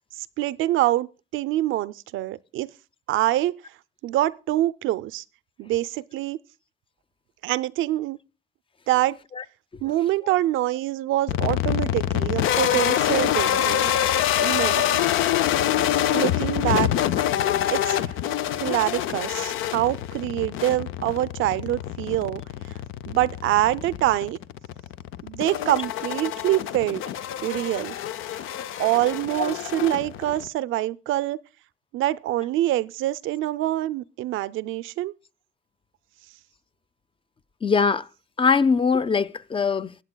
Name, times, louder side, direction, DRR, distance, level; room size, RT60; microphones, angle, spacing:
voice 1, 0.1-2.7 3.1-3.5 4.0-5.2 5.6-6.4 7.4-8.2 8.9-9.2 9.8-13.9 14.4-15.1 16.1-16.9 17.7-18.1 18.6-22.4 23.1-24.4 25.2-27.0 27.4-27.9 28.3-28.4 28.8-31.4 31.9-35.1, right 15 dB, 90° right, 0.4 m, -25 dB
sound 1, 11.3-30.5, left 11 dB, 85° left, 0.5 m, -26 dB
voice 2, 37.6-38.1 38.4-40.0, left 5 dB, 25° left, 0.5 m, -22 dB
24.0 x 8.1 x 2.2 m
cardioid pair, 90°, 20 cm